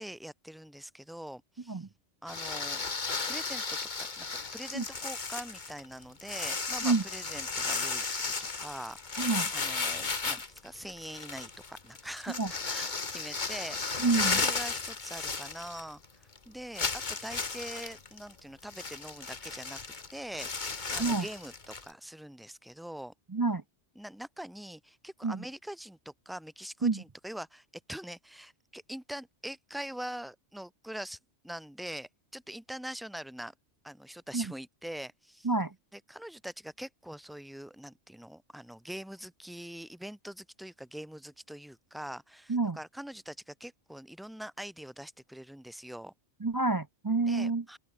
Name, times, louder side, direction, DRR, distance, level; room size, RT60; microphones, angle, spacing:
voice 1, 0.0-1.9 2.2-2.8 3.3-4.3 4.5-8.3 8.6-19.8 20.1-23.1 23.9-31.2 31.4-33.5 33.8-35.5 35.9-46.1 47.2-47.8, right 1 dB, ahead, 2.9 m, -43 dB
sound 1, 2.3-16.0 16.3-16.4 16.7-21.9, left 4 dB, 40° left, 1.7 m, -34 dB
voice 2, 9.2-9.5 12.4-12.5 14.0-14.4 21.0-21.3 23.3-23.6 25.2-25.4 26.8-27.0 34.3-34.5 35.4-35.7 42.5-42.8 46.4-47.6, right 3 dB, 35° right, 0.3 m, -28 dB
open air
omnidirectional pair, 1.2 m